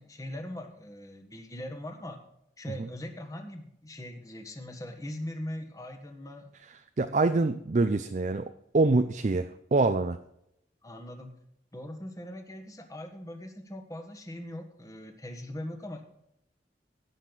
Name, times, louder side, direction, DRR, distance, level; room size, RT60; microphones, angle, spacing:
voice 1, 0.0-2.2 2.6-6.6 10.8-11.3 11.7-16.0, left 1 dB, 20° left, 4 dB, 1.4 m, -41 dB
voice 2, 7.0-10.2, right 3 dB, 40° right, 8 dB, 0.5 m, -25 dB
17.5 x 6.5 x 4.0 m, 0.76 s
head